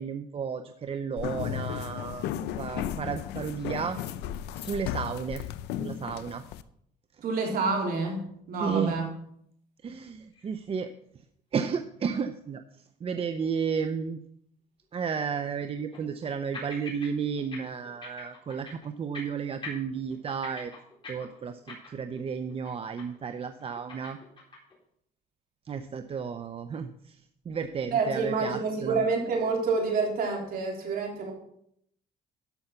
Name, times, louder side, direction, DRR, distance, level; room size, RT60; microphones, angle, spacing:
voice 1, 0.0-2.3 2.6-4.0 4.6-5.4 5.8-6.4 8.6-9.1 9.8-10.9 11.5-12.6 13.0-14.2 14.9-20.7 21.1-24.2 25.7-27.2 27.5-29.0, right 6 dB, 35° right, 9 dB, 0.6 m, -32 dB
sound 1, 1.2-6.6, left 11 dB, 85° left, 0.6 m, -35 dB
voice 2, 7.2-9.1 27.9-31.3, right 4 dB, 60° right, 0 dB, 3.5 m, -28 dB
sound 2, 10.3-10.5 10.9-11.0 11.6-11.7 14.8-14.9 15.6-16.3 16.5-17.1 17.4-17.6 17.8-18.9 19.1-19.4 19.6-22.2 22.5-22.7 23.0-23.3 23.6-24.7, left 3 dB, 30° left, 4.2 m, -43 dB
12.5 x 5.6 x 5.8 m, 0.70 s
cardioid pair, 110°, 17 cm